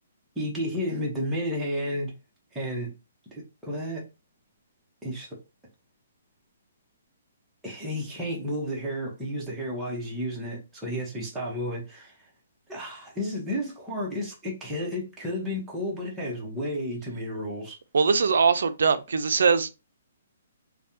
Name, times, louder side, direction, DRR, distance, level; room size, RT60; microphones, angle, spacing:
voice 1, 0.4-2.1 2.5-2.9 3.3-4.0 5.0-5.3 7.6-12.1 12.7-17.8, equal, 5° right, 1.0 m, -32 dB
voice 2, 17.9-19.7, right 5 dB, 75° right, 0.4 m, -21 dB
3.3 x 2.2 x 2.7 m
hypercardioid pair, 150°, 0 cm